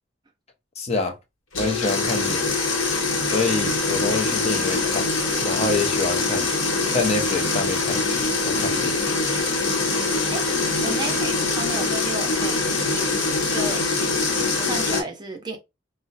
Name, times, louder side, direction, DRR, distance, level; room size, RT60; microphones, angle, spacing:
voice 1, 0.8-1.1 1.6-2.5 3.3-5.0 5.4-6.5 6.9-9.0, left 3 dB, 30° left, 0.5 m, -27 dB
sound 1, 1.5-15.0, left 3 dB, 80° left, 0.9 m, -23 dB
voice 2, 9.9-10.4 10.8-13.2 13.5-15.6, right 2 dB, 20° right, 0.5 m, -33 dB
2.5 x 2.1 x 3.9 m
head